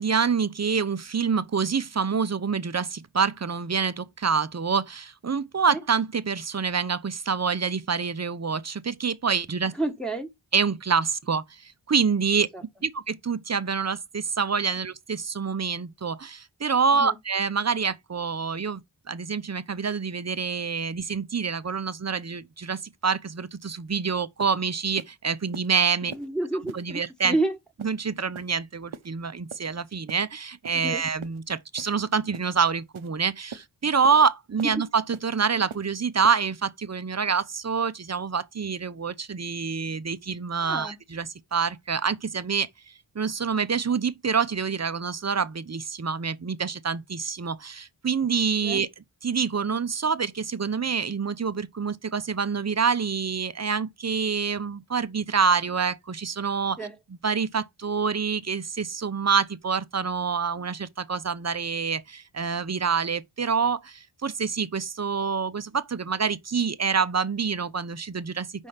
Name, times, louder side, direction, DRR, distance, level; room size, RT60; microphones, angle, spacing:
voice 1, 0.0-9.7 10.5-12.5 12.8-18.8 19.1-26.1 26.7-27.4 27.8-42.7 43.1-48.9 49.2-68.7, right 5 dB, 35° right, 0.6 m, -26 dB
voice 2, 9.8-10.3 12.5-12.6 17.0-17.2 26.1-27.0 27.3-27.5 30.7-31.0 40.6-41.0 48.6-48.8 56.8-56.9 68.6-68.7, right 2 dB, ahead, 1.2 m, -29 dB
sound 1, 23.9-24.0 24.4-24.6 25.0-25.1 25.5-25.7 26.1-26.3 26.7-26.8 27.2-27.4 27.8-28.0 28.3-28.5 28.9-29.1 29.5-29.7 30.1-30.2 30.6-30.8 31.2-31.4 31.8-32.0 32.3-32.5 32.9-33.1 33.5-33.7 34.0-34.2 34.6-34.8 35.1-35.3 35.7-35.9 36.2-36.4, right 7 dB, 85° right, 0.8 m, -41 dB
5.4 x 3.3 x 5.6 m
wide cardioid pair, 60°, 47 cm